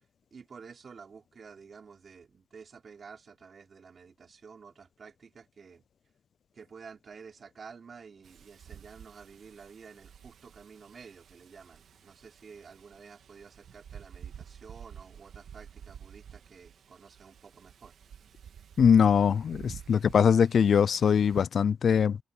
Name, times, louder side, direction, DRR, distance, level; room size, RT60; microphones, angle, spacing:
voice 1, 0.3-5.8 6.5-17.9, right 5 dB, 40° right, 3.7 m, -51 dB
Wind, 8.2-21.4, right 8 dB, 60° right, 2.5 m, -51 dB
voice 2, 18.8-22.2, left 7 dB, 50° left, 0.4 m, -22 dB
cardioid pair, 90°, 0 cm